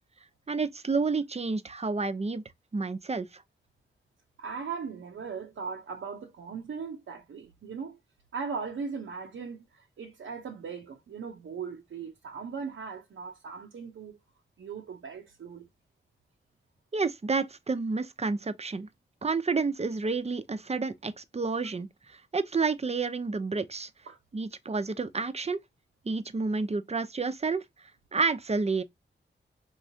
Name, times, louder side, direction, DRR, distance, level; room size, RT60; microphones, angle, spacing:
voice 1, 0.5-2.4 2.7-3.4 16.9-18.9 19.2-23.9 24.3-25.6 26.0-28.8, right 4 dB, 30° right, 0.6 m, -30 dB
voice 2, 4.4-8.0 8.3-14.2 14.6-15.6 24.1-24.2, right 5 dB, 90° right, 0.7 m, -38 dB
4.6 x 3.1 x 2.7 m
cardioid pair, 60°, 20 cm